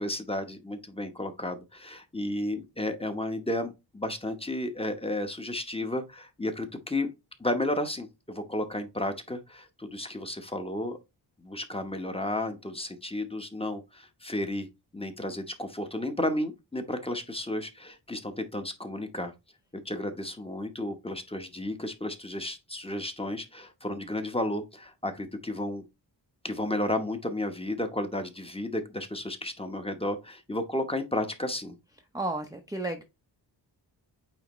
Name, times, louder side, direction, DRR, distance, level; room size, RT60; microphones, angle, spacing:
voice 1, 0.0-7.1 7.4-11.0 11.4-14.7 14.9-19.3 19.8-25.8 26.4-31.8, left 1 dB, 10° left, 0.9 m, -33 dB
voice 2, 32.1-33.0, right 2 dB, 10° right, 0.6 m, -32 dB
8.8 x 3.5 x 3.0 m
wide cardioid pair, 130°, 45 cm